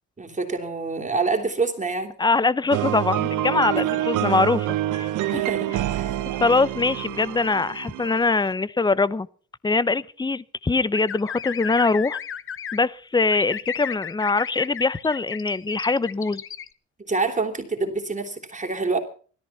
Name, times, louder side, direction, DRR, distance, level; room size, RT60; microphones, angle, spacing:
voice 1, 0.2-2.2 3.5-3.6 5.3-5.7 5.9-6.2 17.1-19.0, right 4 dB, 25° right, 3 dB, 3.2 m, -26 dB
voice 2, 2.2-4.7 4.9-5.4 6.4-9.3 9.6-12.2 12.7-16.4, left 3 dB, 15° left, 20 dB, 0.8 m, -23 dB
sound 1, 2.7-8.5, right 14 dB, 85° right, 1.1 m, -27 dB
sound 2, 10.9-12.8 13.3-16.7, left 8 dB, 45° left, 1.0 m, -34 dB
17.0 x 14.0 x 5.7 m, 0.42 s
cardioid pair, 90°, 30 cm